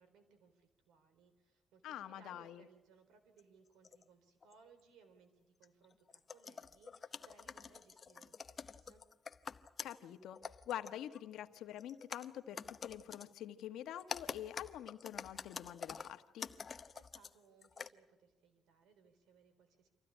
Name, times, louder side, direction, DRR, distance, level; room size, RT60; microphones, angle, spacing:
voice 1, 0.0-9.0 16.9-19.9, right 5 dB, 85° right, 7 dB, 4.0 m, -66 dB
voice 2, 1.8-2.7 9.8-10.4 10.7-16.5, left 11 dB, 80° left, 9 dB, 1.3 m, -46 dB
sound 1, 3.4-3.5 3.8-4.0 4.4-4.5 5.6-10.0 10.4-11.3 11.8-13.3 14.0-17.3 17.6-17.9, left 5 dB, 40° left, 0.8 m, -47 dB
26.0 x 15.5 x 9.9 m, 1.1 s
cardioid pair, 90°, 0 cm